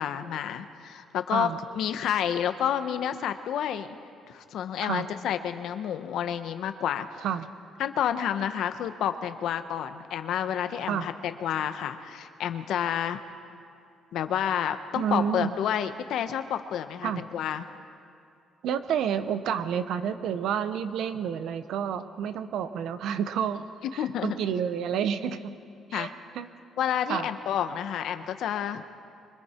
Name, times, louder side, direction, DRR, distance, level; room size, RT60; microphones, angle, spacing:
voice 1, 0.0-3.9 4.3-7.1 7.8-13.2 14.1-17.7 23.8-24.4 25.9-26.1 26.8-28.8, left 9 dB, 65° left, 9 dB, 1.0 m, -29 dB
voice 2, 14.9-15.5 17.0-17.2 18.6-23.6 23.9-25.5 25.9-26.1 26.3-26.5 27.1-27.3, right 8 dB, 70° right, 11 dB, 1.0 m, -29 dB
25.5 x 24.0 x 4.5 m, 2.4 s
cardioid pair, 170°, 0 cm